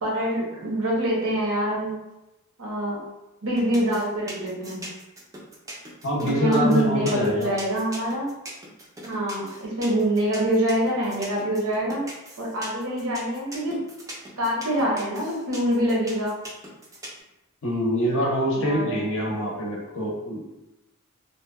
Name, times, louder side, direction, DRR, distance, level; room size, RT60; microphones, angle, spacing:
voice 1, 0.0-1.9 2.6-3.0 3.4-4.8 6.2-8.3 9.1-12.0 12.4-13.8 14.4-16.4 18.6-19.0, right 1 dB, 65° right, -3 dB, 0.8 m, -25 dB
sound 1, 3.6-17.2, right 1 dB, 15° right, 0.4 m, -40 dB
voice 2, 6.0-7.5 17.6-20.5, equal, 60° left, -2 dB, 0.6 m, -25 dB
2.7 x 2.1 x 2.3 m, 0.96 s
head